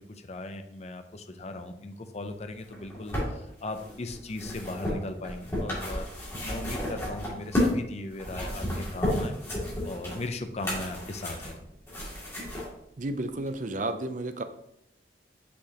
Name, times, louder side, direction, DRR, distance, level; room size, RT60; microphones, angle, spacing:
voice 1, 0.0-6.1 6.4-11.6, left 2 dB, 40° left, 7 dB, 0.6 m, -38 dB
sound 1, 2.6-7.8 8.1-12.7 13.5-13.6, left 1 dB, 15° left, 2.4 m, -32 dB
voice 2, 13.0-14.4, right 2 dB, 45° right, 9 dB, 0.5 m, -32 dB
6.0 x 6.0 x 2.9 m, 0.78 s
head